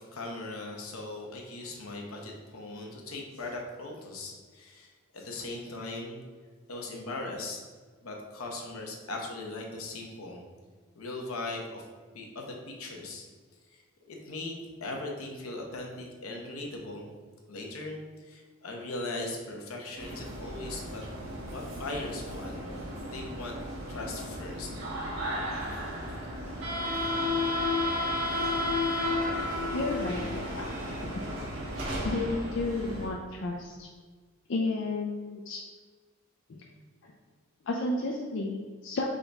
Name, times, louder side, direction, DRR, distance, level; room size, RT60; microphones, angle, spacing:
voice 1, 0.0-6.2 6.7-7.6 8.0-10.4 10.9-11.8 12.1-13.3 13.7-13.8 14.1-17.1 17.5-21.0 21.5-22.6 23.1-23.6 23.9-24.7, left 2 dB, 80° left, 1 dB, 0.9 m, -39 dB
sound 1, 20.0-33.1, left 1 dB, 60° right, 1.5 m, -33 dB
voice 2, 29.7-30.7 31.0-31.1 32.0-33.9 34.5-35.6 36.5-36.6 37.0-37.1 37.7-39.1, left 2 dB, 60° left, -1 dB, 0.4 m, -32 dB
3.8 x 3.4 x 4.0 m, 1.5 s
head